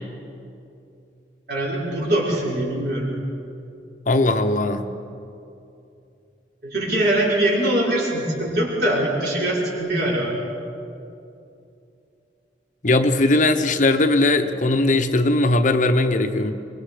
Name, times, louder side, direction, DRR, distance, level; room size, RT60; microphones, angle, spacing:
voice 1, 1.5-3.1 6.6-10.4, right 1 dB, 60° right, -5 dB, 5.6 m, -22 dB
voice 2, 4.1-4.9 12.8-16.5, left 2 dB, 45° left, 7 dB, 0.9 m, -19 dB
24.0 x 22.5 x 5.0 m, 2.7 s
head